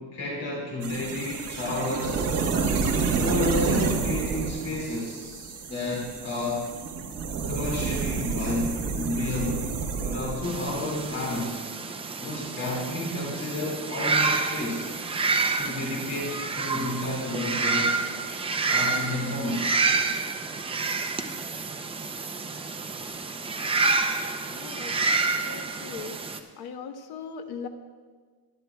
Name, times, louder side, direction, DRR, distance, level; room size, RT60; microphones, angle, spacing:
voice 1, 0.0-2.2 3.2-6.7 7.5-9.7 10.0-11.6 12.2-14.9 15.6-18.0 18.7-19.7, left 1 dB, 40° left, -4 dB, 2.3 m, -31 dB
sound 1, 0.8-11.5, right 5 dB, 40° right, 1.3 m, -29 dB
sound 2, 10.4-26.4, right 4 dB, 15° right, 0.5 m, -28 dB
voice 2, 24.5-24.9 25.4-26.1 26.6-27.7, left 6 dB, 70° left, 6 dB, 1.2 m, -38 dB
24.5 x 10.5 x 2.3 m, 1.5 s
cardioid pair, 165°, 39 cm